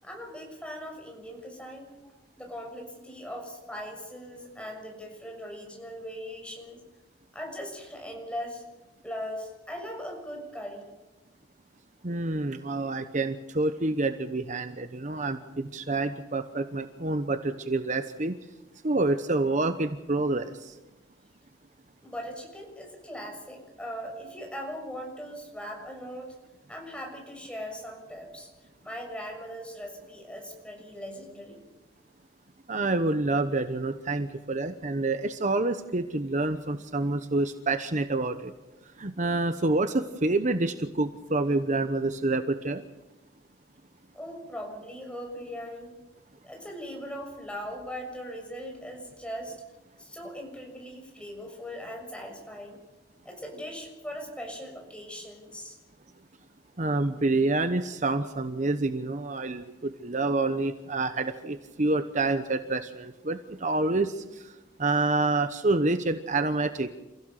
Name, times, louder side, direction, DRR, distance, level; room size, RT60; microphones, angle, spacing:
voice 1, 0.0-6.8 7.3-8.6 9.0-10.9 22.0-26.3 26.7-28.5 28.8-31.6 44.1-45.9 46.4-49.6 50.0-52.8 53.2-55.8, equal, 5° left, 1 dB, 6.8 m, -40 dB
voice 2, 12.0-18.4 18.8-20.8 32.7-38.5 39.0-42.8 56.8-66.9, right 2 dB, 45° right, 9 dB, 1.0 m, -28 dB
29.5 x 16.0 x 6.7 m, 1.1 s
head